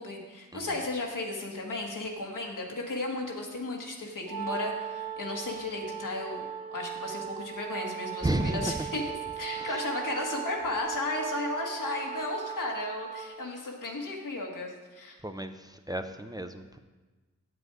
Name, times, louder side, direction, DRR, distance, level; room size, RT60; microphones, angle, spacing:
voice 1, 0.0-6.4 6.7-15.2, left 2 dB, 80° left, 0 dB, 1.5 m, -34 dB
Wind instrument woodwind instrument, 4.2-13.5, right 9 dB, 55° right, 1.4 m, -38 dB
voice 2, 8.2-8.9 9.6-9.7 15.2-16.8, right 1 dB, 10° right, 7 dB, 0.6 m, -32 dB
8.0 x 7.7 x 4.8 m, 1.3 s
cardioid pair, 50°, 31 cm